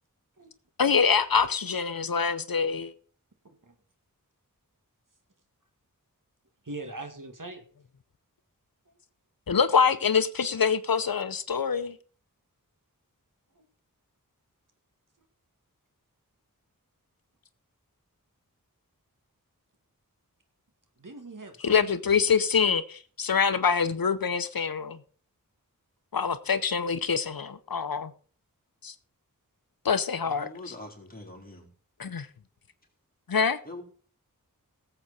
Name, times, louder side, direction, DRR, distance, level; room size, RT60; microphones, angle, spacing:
voice 1, 0.8-2.9 9.5-11.9 21.6-25.0 26.1-28.1 28.8-28.9 29.8-30.7 32.0-32.3 33.3-33.6, left 6 dB, 80° left, 0.8 m, -25 dB
voice 2, 6.6-7.6 8.9-9.0 13.6-13.7 21.0-21.9, right 2 dB, 65° right, 2.1 m, -41 dB
voice 3, 30.3-31.7 33.7-33.8, left 2 dB, 25° left, 3.9 m, -43 dB
18.0 x 7.8 x 4.2 m
wide cardioid pair, 55°, 35 cm